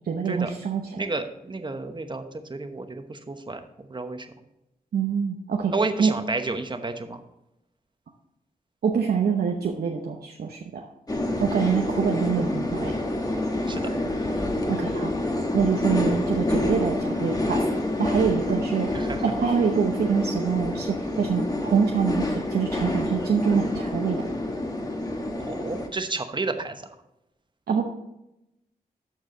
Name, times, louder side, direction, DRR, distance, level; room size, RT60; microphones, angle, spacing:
voice 1, 0.0-1.0 4.9-5.7 6.0-6.1 8.8-10.9 11.4-12.9 14.7-15.1 15.5-17.6 18.0-18.9 19.2-22.2 22.5-24.2 27.7-27.8, right 6 dB, 85° right, 1 dB, 0.9 m, -25 dB
voice 2, 0.9-4.3 5.7-7.2 13.7-13.9 18.9-19.2 25.4-26.9, right 3 dB, 30° right, 7 dB, 1.0 m, -31 dB
sound 1, 11.1-25.9, left 1 dB, 25° left, 1.4 m, -27 dB
13.5 x 4.7 x 3.8 m, 0.88 s
cardioid pair, 80°, 16 cm